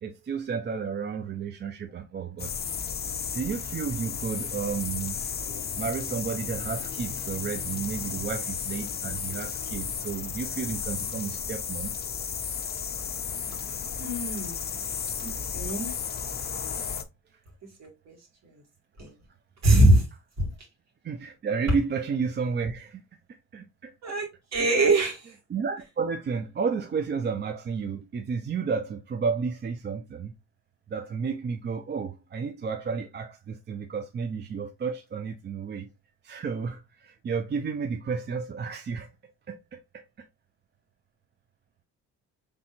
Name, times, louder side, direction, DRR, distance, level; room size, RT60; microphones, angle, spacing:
voice 1, 0.0-2.6 3.3-5.2 5.8-11.9 15.9-16.0 21.0-23.0 23.5-24.1 24.6-24.7 25.5-30.3 30.9-35.9 36.2-39.1 39.5-40.3, right 5 dB, 35° right, 0.5 m, -32 dB
sound 1, 2.4-17.0, left 7 dB, 35° left, 0.5 m, -33 dB
voice 2, 14.0-14.6 15.2-15.9 17.8-18.2 19.0-19.1 19.6-20.0 20.4-20.5 24.0-25.3, right 2 dB, 60° right, 2.1 m, -23 dB
4.3 x 3.3 x 2.6 m
cardioid pair, 90°, 30 cm